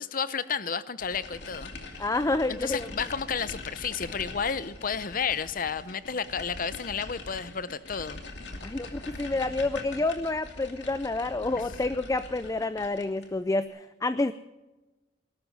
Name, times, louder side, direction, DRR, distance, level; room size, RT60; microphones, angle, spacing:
voice 1, 0.0-2.0 2.5-8.2, left 6 dB, 50° left, 15 dB, 0.8 m, -32 dB
sound 1, 1.0-13.3, left 3 dB, 75° left, 2.6 m, -43 dB
voice 2, 2.0-2.9 8.6-14.3, left 2 dB, 20° left, 13 dB, 0.5 m, -28 dB
20.0 x 12.5 x 5.4 m, 1.1 s
head